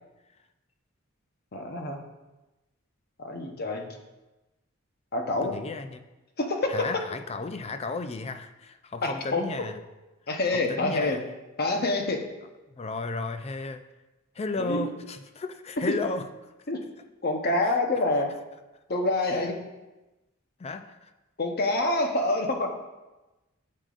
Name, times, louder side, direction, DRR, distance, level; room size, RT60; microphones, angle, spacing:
voice 1, 1.5-2.0 3.2-3.9 5.1-5.6 6.4-6.8 9.0-9.4 10.3-11.2 11.6-12.2 14.6-14.9 16.7-16.8 17.2-18.3 18.9-19.6 21.4-22.7, left 2 dB, 50° left, 3 dB, 0.9 m, -26 dB
voice 2, 5.4-6.0 6.7-9.8 10.5-11.2 12.7-13.8 14.4-16.3 20.6-21.1, left 3 dB, 30° left, 8 dB, 0.4 m, -34 dB
8.8 x 7.5 x 2.5 m, 1.1 s
head